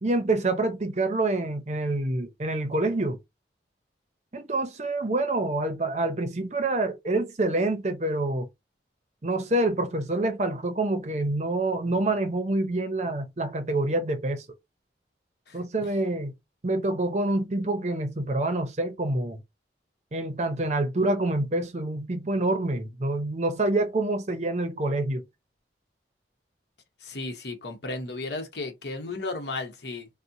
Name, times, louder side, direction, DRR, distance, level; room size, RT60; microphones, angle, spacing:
voice 1, 0.0-3.2 4.3-8.5 9.2-14.4 15.5-16.3 16.6-19.4 20.1-25.2, right 2 dB, 40° right, 0.6 m, -27 dB
voice 2, 15.5-15.9 27.0-30.1, left 2 dB, 75° left, 0.9 m, -35 dB
4.1 x 2.1 x 2.6 m
head